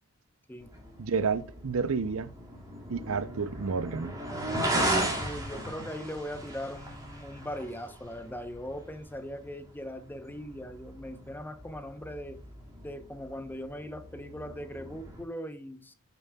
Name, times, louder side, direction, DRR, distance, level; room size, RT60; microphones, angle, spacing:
sound 1, 0.6-15.2, right 1 dB, 15° right, 2.0 m, -37 dB
voice 1, 1.0-2.3 2.9-4.2, right 5 dB, 65° right, 0.5 m, -30 dB
voice 2, 5.2-12.4 12.8-15.9, equal, 10° left, 0.7 m, -40 dB
8.3 x 6.9 x 2.2 m
head